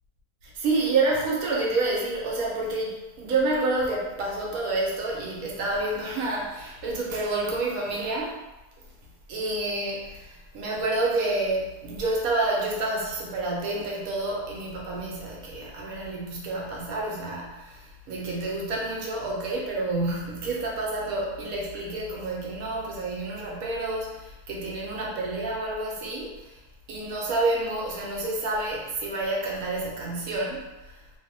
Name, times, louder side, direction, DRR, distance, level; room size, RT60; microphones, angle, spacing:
voice 1, 0.4-8.4 9.3-26.5 26.9-31.0, right 2 dB, 70° right, -3 dB, 1.0 m, -29 dB
2.9 x 2.0 x 2.6 m, 1.0 s
omnidirectional pair, 1.7 m